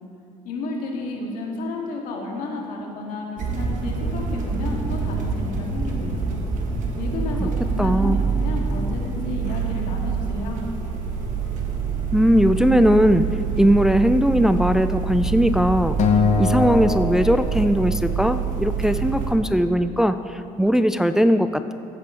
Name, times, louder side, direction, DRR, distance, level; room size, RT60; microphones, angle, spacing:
voice 1, 0.4-6.2 7.0-10.6, left 2 dB, 80° left, 0 dB, 1.8 m, -32 dB
sound 1, 3.4-19.3, right 5 dB, 65° right, 1.5 m, -26 dB
voice 2, 7.8-8.2 12.1-13.3 13.6-16.0 16.4-21.7, equal, 5° right, 10 dB, 0.3 m, -19 dB
Acoustic guitar, 16.0-18.4, left 5 dB, 55° left, 0.9 m, -23 dB
14.5 x 8.7 x 3.7 m, 2.7 s
cardioid pair, 110°, 14 cm